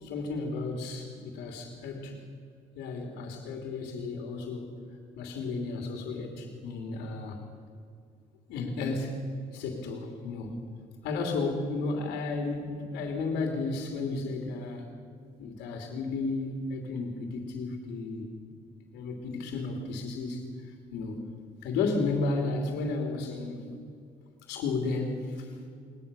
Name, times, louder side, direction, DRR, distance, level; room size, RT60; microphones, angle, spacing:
voice 1, 0.0-2.2 2.7-4.7 5.1-7.4 8.5-9.2 9.5-10.6 11.0-14.9 15.4-18.3 18.9-21.3 21.6-23.7 24.5-25.5, left 3 dB, 90° left, 2 dB, 3.1 m, -33 dB
21.0 x 20.5 x 7.0 m, 2.3 s
cardioid pair, 110°, 17 cm